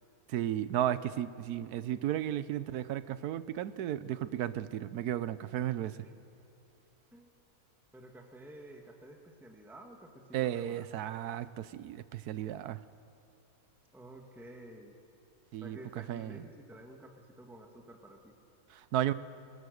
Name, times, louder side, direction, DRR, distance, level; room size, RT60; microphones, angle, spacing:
voice 1, 0.3-6.0 10.3-12.8 15.5-15.8 16.1-16.4 18.7-19.1, right 11 dB, 90° right, 15 dB, 1.2 m, -34 dB
voice 2, 7.9-10.8 13.9-15.0 15.6-18.3, right 1 dB, ahead, 2 dB, 1.4 m, -51 dB
22.0 x 19.0 x 6.5 m, 2.8 s
omnidirectional pair, 1.6 m